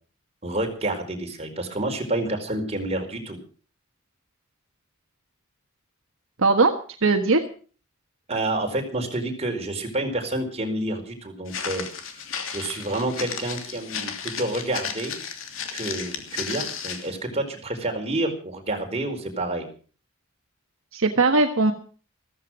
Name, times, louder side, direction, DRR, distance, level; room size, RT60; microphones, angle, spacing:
voice 1, 0.4-3.4 8.3-11.8 12.5-15.2 15.7-19.7, right 2 dB, 30° right, 3 dB, 4.6 m, -29 dB
voice 2, 6.4-6.7 7.0-7.4 20.9-21.7, right 3 dB, 65° right, 5 dB, 1.5 m, -19 dB
Walk footsteps, 11.5-17.2, left 6 dB, 70° left, 2.9 m, -34 dB
15.0 x 14.0 x 6.2 m, 0.41 s
head